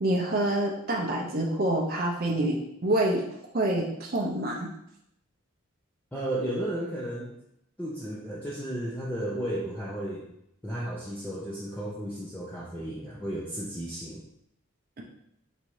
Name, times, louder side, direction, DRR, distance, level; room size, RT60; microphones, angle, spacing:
voice 1, 0.0-3.2 3.5-4.7, right 1 dB, 45° right, -1 dB, 0.6 m, -27 dB
voice 2, 6.1-7.4 7.8-10.3 10.6-14.2, right 1 dB, 10° left, -7 dB, 0.6 m, -33 dB
4.1 x 2.6 x 4.7 m, 0.76 s
head